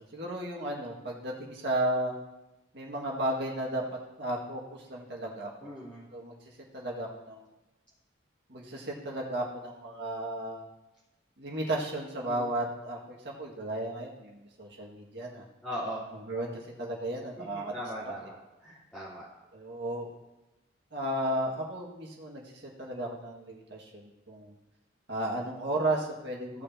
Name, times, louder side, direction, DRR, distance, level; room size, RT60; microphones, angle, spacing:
voice 1, 0.1-2.1 2.7-3.8 4.2-5.7 6.1-6.3 6.7-7.4 8.5-10.6 11.4-15.4 16.3-16.5 16.8-17.7 19.5-20.1 20.9-22.4 22.8-24.5 25.1-26.6, right 1 dB, 60° right, -2 dB, 1.9 m, -34 dB
voice 2, 5.6-6.0 12.2-12.6 15.6-16.1 17.4-18.3 18.6-19.2 26.5-26.6, equal, 5° left, -14 dB, 3.3 m, -39 dB
16.5 x 6.6 x 2.8 m, 1.0 s
head